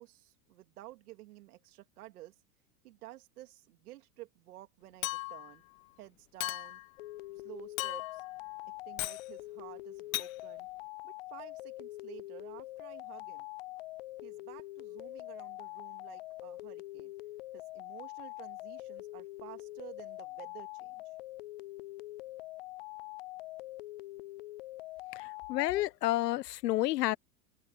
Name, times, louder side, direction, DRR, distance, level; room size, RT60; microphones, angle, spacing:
voice 1, 0.0-2.4 2.8-5.6 6.0-6.8 7.4-8.2 8.8-10.7 11.0-13.5 14.2-17.1 17.5-21.0, right 16 dB, 65° right, 3.0 m, -52 dB
Chink clink, 5.0-5.5 6.4-6.9 7.8-8.3 9.0-9.2 10.1-10.3, left 18 dB, 55° left, 1.0 m, -36 dB
sound 1, 7.0-25.8, left 18 dB, 40° left, 0.4 m, -44 dB
voice 2, 25.1-27.2, left 16 dB, 85° left, 0.9 m, -30 dB
supercardioid pair, 160°, 48 cm